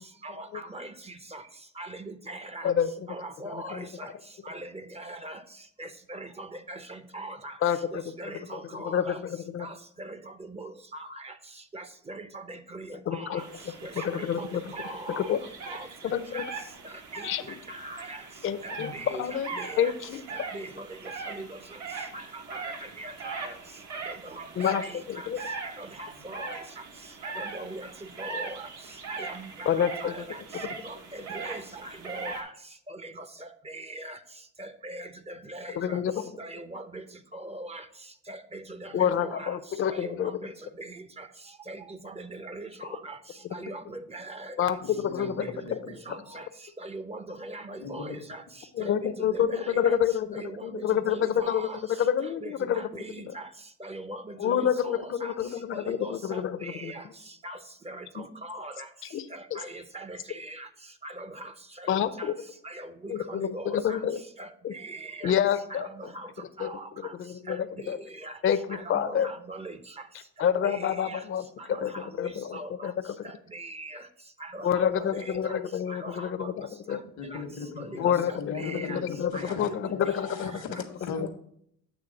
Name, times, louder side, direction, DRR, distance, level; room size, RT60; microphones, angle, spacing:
voice 1, 0.2-0.9 1.3-1.4 1.8-2.7 3.1-4.1 4.5-5.4 5.8-7.5 7.9-9.2 9.6-11.3 11.7-13.5 13.8-15.4 15.7-15.9 16.3-16.4 16.8-17.3 17.7-18.2 18.6-19.9 20.3-20.9 21.3-21.5 22.1-23.5 23.9-24.5 24.8-25.3 25.6-26.6 27.2-27.9 28.2-28.7 29.1-30.4 30.8-32.5 32.9-34.2 34.6-36.0 36.4-37.0 37.3-37.8 38.3-39.5 39.9-40.5 40.8-41.3 41.7-43.2 43.5-44.7 45.2-45.5 45.9-46.4 46.8-48.4 48.8-50.0 50.3-51.8 52.2-53.5 53.8-55.3 55.8-57.0 57.4-57.6 57.9-58.9 59.3-60.7 61.0-61.5 62.2-62.3 62.6-62.9 63.3-64.0 64.4-64.5 64.8-65.4 65.7-66.3 66.6-67.1 67.5-67.6 68.2-68.3 68.7-69.8 70.6-71.2 71.7-72.9 73.2-74.0 74.4-75.6 75.9-76.5 77.3-77.4 77.8-79.0 79.3-80.8, right 2 dB, 20° right, 11 dB, 0.5 m, -41 dB
voice 2, 7.6-8.0 8.8-9.7 13.1-13.4 14.0-14.6 15.2-15.4 16.0-16.5 17.2-17.4 18.4-19.5 19.8-20.2 24.6-24.8 25.1-25.4 29.7-30.2 35.8-36.2 38.9-40.3 43.5-43.6 44.6-45.5 45.7-45.8 48.8-50.3 50.6-51.7 52.0-52.9 54.4-56.9 58.2-58.3 59.1-59.3 61.9-62.3 63.1-64.2 64.6-64.7 65.2-65.9 66.6-66.7 67.0-68.0 68.4-69.3 70.4-71.4 71.8-72.9 74.6-77.0 78.0-80.5 81.2-81.3, left 9 dB, 45° left, 10 dB, 0.5 m, -28 dB
sound 1, 13.4-32.4, right 4 dB, 70° right, 1.2 m, -40 dB
voice 3, 44.8-45.9 47.8-48.1 77.2-78.1 78.4-81.3, left 4 dB, 85° left, 7 dB, 1.1 m, -39 dB
8.2 x 3.1 x 5.1 m, 0.69 s
cardioid pair, 90°, 30 cm